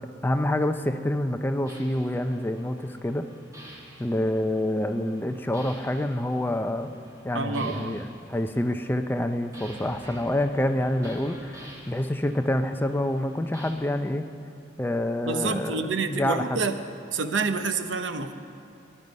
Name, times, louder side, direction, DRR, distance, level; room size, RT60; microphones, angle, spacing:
voice 1, 0.2-3.3 4.0-6.9 7.2-14.3 14.8-16.7, left 1 dB, 10° left, 7 dB, 0.5 m, -27 dB
sound 1, 1.7-13.7, equal, 20° right, 1.8 m, -49 dB
voice 2, 7.3-8.0 15.2-16.8 17.1-18.3, right 4 dB, 85° right, 9 dB, 0.8 m, -28 dB
17.0 x 11.0 x 5.3 m, 2.6 s
head